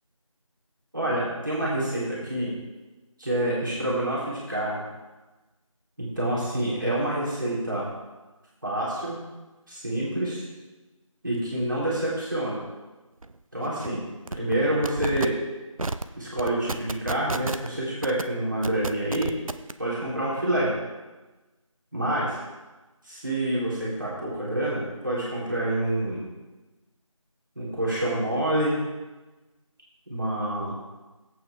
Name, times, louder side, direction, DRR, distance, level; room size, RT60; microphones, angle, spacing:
voice 1, 0.9-2.6 3.2-4.8 6.0-7.9 8.6-9.2 9.7-10.4 11.2-12.6 13.5-14.0 14.4-15.4 16.2-19.3 19.8-20.7 21.9-22.4 23.0-26.2 27.5-28.8 30.1-30.7, right 1 dB, 35° right, -7 dB, 3.3 m, -27 dB
sound 1, 13.2-13.3 13.6-13.9 14.3-14.6 14.8-15.3 15.8-16.0 16.4-17.7 18.0-18.2 18.6-19.7, right 2 dB, 75° right, 0.7 m, -30 dB
15.0 x 8.6 x 3.5 m, 1.2 s
figure-of-eight pair, 175°, 18 cm